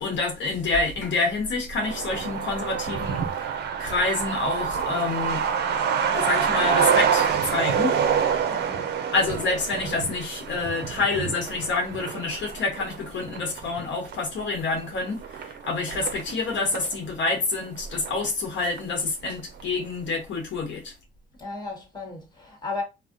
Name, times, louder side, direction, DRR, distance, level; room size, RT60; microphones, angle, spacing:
voice 1, 0.0-5.4 6.1-8.0 9.1-20.9, left 3 dB, 70° left, 0.9 m, -27 dB
Truck, 1.8-17.0 17.3-17.4 17.6-18.5 18.8-18.9 19.3-19.6, right 7 dB, 55° right, 0.5 m, -27 dB
voice 2, 8.5-9.0 21.4-22.8, left 3 dB, 20° left, 1.3 m, -35 dB
2.5 x 2.1 x 3.7 m
cardioid pair, 90°, 20 cm